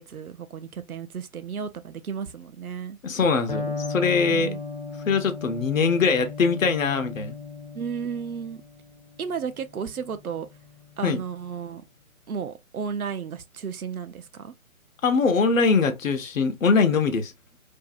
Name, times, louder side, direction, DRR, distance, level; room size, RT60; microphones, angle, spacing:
voice 1, 0.0-3.0 4.3-4.6 7.7-8.6 9.2-10.5 11.0-11.8 12.3-14.5, right 6 dB, 85° right, 0.5 m, -33 dB
voice 2, 3.0-4.5 5.0-7.4 11.0-11.2 15.0-17.3, left 4 dB, 65° left, 0.7 m, -22 dB
Electric guitar, 3.5-11.3, left 4 dB, 30° left, 0.5 m, -36 dB
2.6 x 2.0 x 2.3 m
figure-of-eight pair, 140°, 42 cm